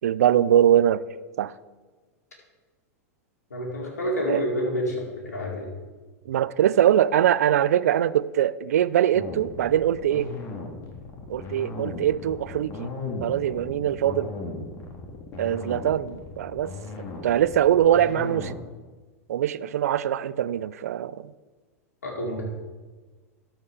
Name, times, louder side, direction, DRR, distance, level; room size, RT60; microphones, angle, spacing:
voice 1, 0.0-1.0 1.4-1.5 4.3-4.4 6.3-10.3 11.3-12.9 13.2-14.3 15.4-16.7 17.2-18.5 19.3-21.3, right 10 dB, 75° right, 18 dB, 0.4 m, -22 dB
voice 2, 3.5-5.7 22.0-22.4, equal, 85° left, -2 dB, 2.2 m, -28 dB
sound 1, 9.1-18.6, left 3 dB, 40° left, 1.8 m, -36 dB
13.0 x 4.7 x 4.9 m, 1.3 s
hypercardioid pair, 100°, 8 cm